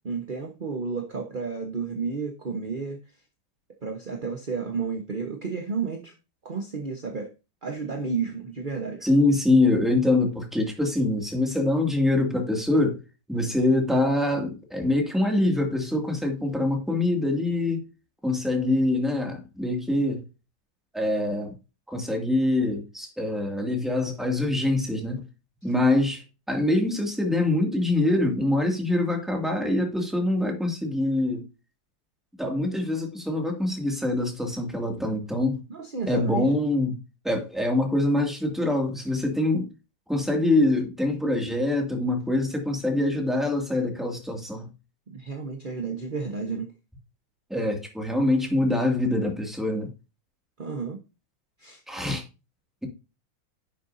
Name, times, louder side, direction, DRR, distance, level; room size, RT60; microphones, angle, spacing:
voice 1, 0.0-3.0 3.8-6.1 6.4-7.3 7.6-9.1 25.7-25.8 35.7-36.5 45.1-46.7 50.6-51.0 51.6-51.8, right 5 dB, 35° right, 0.9 m, -32 dB
voice 2, 9.0-13.0 13.3-17.8 18.2-20.2 20.9-21.5 21.9-25.2 25.6-31.4 32.4-35.6 36.1-37.0 37.2-39.7 40.1-44.7 47.5-49.9 51.9-52.2, left 2 dB, ahead, 2.1 m, -24 dB
11.0 x 6.9 x 2.7 m
omnidirectional pair, 2.4 m